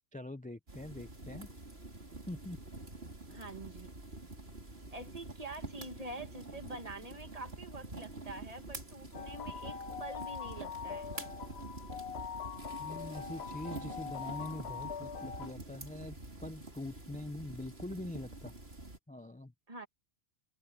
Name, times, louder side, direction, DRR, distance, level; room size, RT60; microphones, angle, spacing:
voice 1, 0.1-1.5 2.3-2.6 12.8-18.5 19.1-19.5, left 1 dB, 10° left, 0.4 m, -44 dB
sound 1, 0.7-19.0, right 2 dB, 60° right, 4.2 m, -47 dB
voice 2, 3.3-3.9 4.9-11.1 19.7-19.9, right 2 dB, 35° right, 1.6 m, -46 dB
sound 2, 9.1-15.5, left 7 dB, 65° left, 1.1 m, -43 dB
omnidirectional pair, 1.2 m